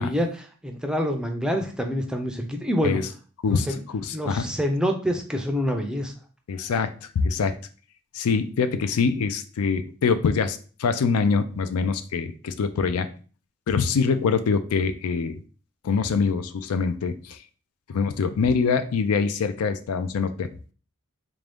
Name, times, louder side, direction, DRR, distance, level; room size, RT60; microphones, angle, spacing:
voice 1, 0.0-3.0 3.5-3.8 4.1-6.1, equal, 5° right, 4 dB, 0.4 m, -26 dB
voice 2, 4.0-4.5 6.5-7.5 8.1-13.1 13.7-15.4 15.8-17.4 17.9-20.5, left 5 dB, 90° left, 10 dB, 0.4 m, -24 dB
3.4 x 2.6 x 3.4 m, 0.39 s
head